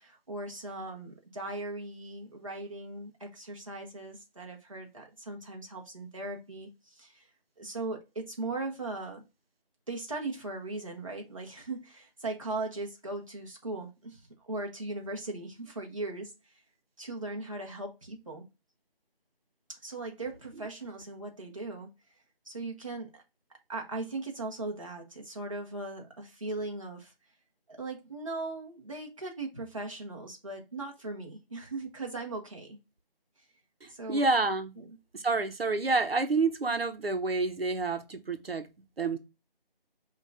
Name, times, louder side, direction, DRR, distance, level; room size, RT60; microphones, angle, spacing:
voice 1, 0.0-7.3 7.6-9.2 9.9-16.5 17.0-18.4 19.7-21.9 22.4-23.2 23.7-27.1 27.8-32.8 33.9-34.3 34.8-35.0, right 2 dB, 35° right, 0.9 m, -38 dB
voice 2, 33.8-34.7 35.1-38.6 39.0-39.2, right 3 dB, 80° right, 0.9 m, -28 dB
5.7 x 2.4 x 3.3 m
figure-of-eight pair, 175°, 29 cm